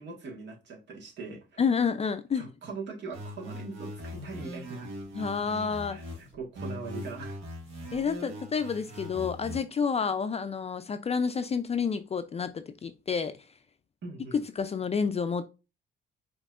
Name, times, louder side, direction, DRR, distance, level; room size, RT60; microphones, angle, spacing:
voice 1, 0.0-1.6 2.3-4.9 5.9-7.4 8.7-8.8 14.0-14.4, right 3 dB, 65° right, 1.6 m, -41 dB
voice 2, 1.6-2.5 5.1-6.0 7.9-13.4 14.3-15.4, left 6 dB, 30° left, 0.4 m, -29 dB
sound 1, 3.1-6.1 6.5-9.6, equal, 85° right, 1.5 m, -41 dB
sound 2, 4.0-4.6 4.9-5.5 5.9-6.5 6.8-8.2 8.6-9.2, left 1 dB, 35° right, 2.1 m, -54 dB
5.4 x 3.0 x 2.4 m
cardioid pair, 90°, 20 cm